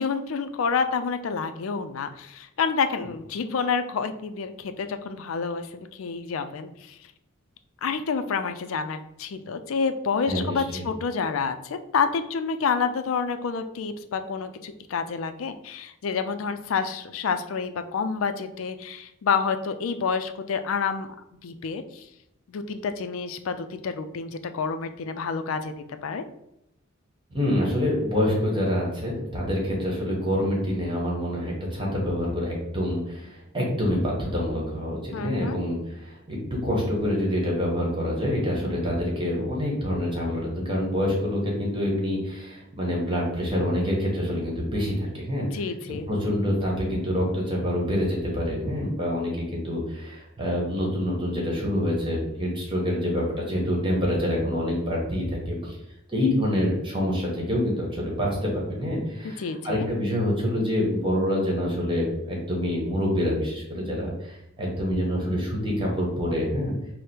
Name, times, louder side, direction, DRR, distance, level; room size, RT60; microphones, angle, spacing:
voice 1, 0.0-7.0 7.8-21.1 21.4-22.1 22.5-26.2 35.1-35.6 45.5-46.1 59.2-59.9, left 5 dB, 70° left, 9 dB, 0.4 m, -28 dB
voice 2, 10.3-10.8 27.3-36.4 36.6-45.5 46.1-55.7 56.1-66.7, equal, 25° right, -3 dB, 1.3 m, -26 dB
4.9 x 2.1 x 4.4 m, 0.83 s
head